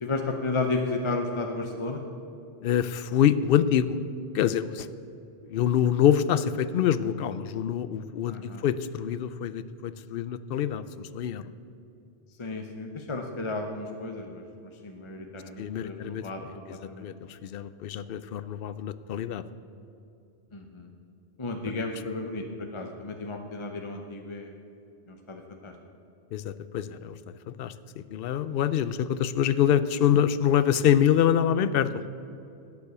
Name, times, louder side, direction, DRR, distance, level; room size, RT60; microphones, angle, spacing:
voice 1, 0.0-2.0 8.3-8.6 12.4-17.1 20.5-20.9 21.4-24.5 25.1-25.7, left 3 dB, 30° left, 4 dB, 0.8 m, -33 dB
voice 2, 2.6-4.0 4.3-4.9 5.5-11.4 15.6-16.2 17.0-17.1 17.4-19.4 26.3-27.1 27.5-27.7 28.1-31.9, left 9 dB, 65° left, 14 dB, 0.7 m, -25 dB
11.5 x 9.5 x 6.8 m, 2.7 s
omnidirectional pair, 1.2 m